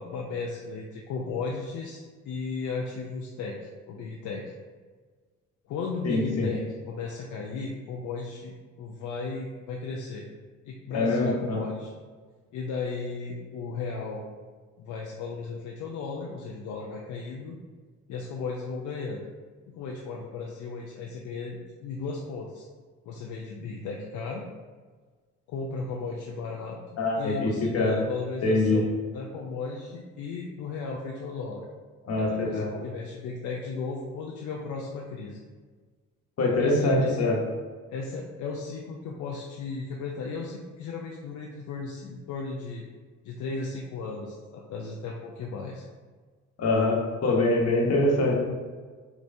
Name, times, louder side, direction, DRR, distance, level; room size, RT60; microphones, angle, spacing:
voice 1, 0.0-3.6 3.9-4.4 5.7-10.3 10.7-11.9 12.5-14.2 14.8-17.6 18.1-19.2 19.8-22.7 23.0-24.4 25.5-26.8 27.2-31.7 32.1-35.4 36.6-37.3 37.9-42.8 43.2-45.9, left 4 dB, 75° left, -1 dB, 0.5 m, -35 dB
voice 2, 6.0-6.5 10.9-11.6 27.0-28.0 28.4-28.8 32.0-32.7 36.4-37.4 46.6-48.3, left 2 dB, 55° left, -1 dB, 1.1 m, -24 dB
5.3 x 3.0 x 2.6 m, 1.4 s
cardioid pair, 90°, 30 cm